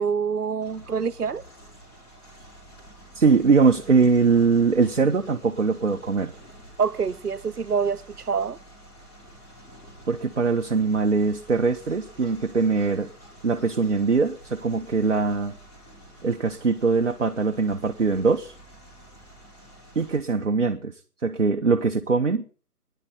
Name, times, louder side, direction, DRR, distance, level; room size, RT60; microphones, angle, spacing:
voice 1, 0.0-1.4 6.8-8.6, right 6 dB, 80° right, 0.8 m, -26 dB
sound 1, 0.6-20.2, right 1 dB, 15° left, 4.1 m, -49 dB
voice 2, 3.1-6.3 10.1-13.1 13.4-15.5 16.2-18.5 19.9-22.4, right 4 dB, 50° right, 1.1 m, -22 dB
18.5 x 10.5 x 3.9 m
figure-of-eight pair, 155°, 46 cm